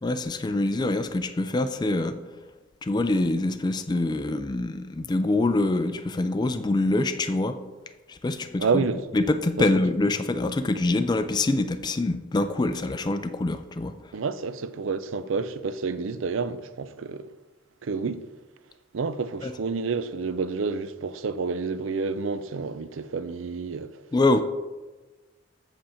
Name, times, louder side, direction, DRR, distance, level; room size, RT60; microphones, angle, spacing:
voice 1, 0.0-2.2 2.8-7.6 8.1-8.8 9.1-14.0 19.4-19.5 24.1-24.4, left 2 dB, 20° left, 0.4 m, -25 dB
voice 2, 8.6-9.1 9.6-9.7 14.1-17.3 17.8-18.2 18.9-23.9, right 4 dB, 75° right, 0.5 m, -29 dB
7.7 x 6.9 x 4.4 m
head